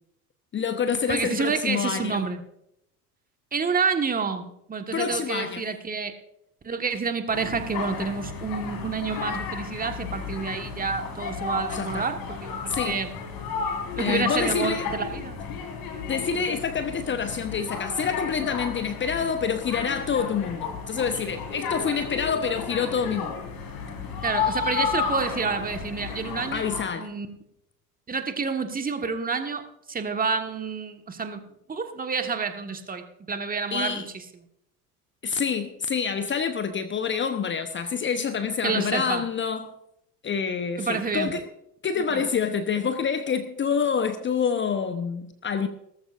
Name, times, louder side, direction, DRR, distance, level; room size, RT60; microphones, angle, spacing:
voice 1, 0.5-2.2 4.9-5.7 11.7-12.1 12.7-13.0 14.0-14.9 16.1-23.3 26.5-27.1 33.7-34.1 35.2-39.7 40.2-41.4 41.8-45.7, left 6 dB, 25° left, 1.0 m, -27 dB
voice 2, 1.1-2.4 3.5-6.1 6.6-13.1 14.0-15.4 24.2-26.7 26.9-27.3 28.1-31.4 31.7-34.2 38.6-39.2 40.8-41.3 42.1-42.2, right 5 dB, 20° right, 1.6 m, -29 dB
sound 1, 7.3-26.8, left 6 dB, 50° left, 3.7 m, -33 dB
18.5 x 14.5 x 2.6 m
figure-of-eight pair, 70°, 46 cm